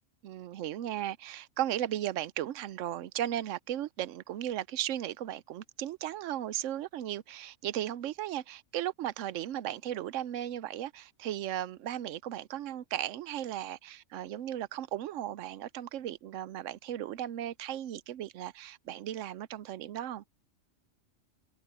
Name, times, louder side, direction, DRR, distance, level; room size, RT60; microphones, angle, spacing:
voice 1, 0.2-20.2, right 12 dB, 75° right, 0.9 m, -36 dB
omnidirectional pair, 1.4 m